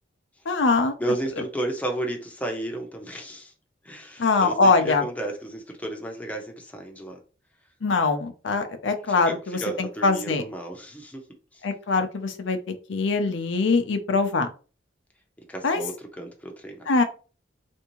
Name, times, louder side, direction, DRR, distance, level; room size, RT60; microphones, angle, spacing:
voice 1, 0.5-0.9 4.2-5.0 7.8-10.4 11.6-14.5 15.6-15.8 16.9-17.0, left 3 dB, 90° left, 6 dB, 0.6 m, -23 dB
voice 2, 1.0-3.5 3.8-7.2 9.3-11.3 11.5-11.6 15.5-16.9, right 1 dB, 10° left, 2 dB, 0.6 m, -33 dB
3.4 x 2.6 x 3.0 m, 0.35 s
head